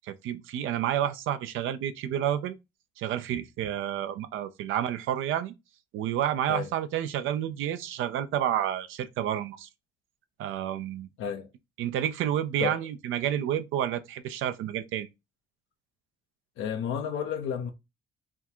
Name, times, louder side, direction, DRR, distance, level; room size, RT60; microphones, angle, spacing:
voice 1, 0.0-2.6 3.0-5.5 5.9-9.7 10.4-11.1 11.8-15.1, right 10 dB, 90° right, 0.6 m, -30 dB
voice 2, 11.2-11.5 12.6-12.8 16.6-17.7, left 7 dB, 90° left, 0.7 m, -31 dB
3.6 x 2.4 x 4.3 m
cardioid pair, 90°, 20 cm